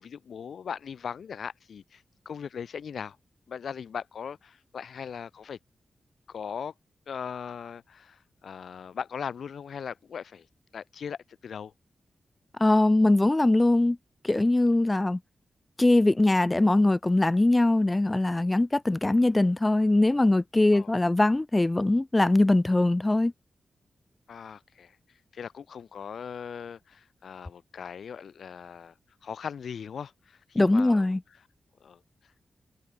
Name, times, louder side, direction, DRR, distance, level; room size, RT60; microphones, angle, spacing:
voice 1, 0.0-3.2 3.5-5.6 6.3-6.7 7.1-10.5 10.7-11.7 20.7-20.9 24.3-25.0 25.3-28.9 29.2-31.2 31.8-32.0, left 7 dB, 75° left, 6.9 m, -39 dB
voice 2, 12.6-14.0 14.2-15.2 15.8-23.3 30.5-31.2, left 2 dB, 15° left, 0.9 m, -22 dB
wide cardioid pair, 145°, 0 cm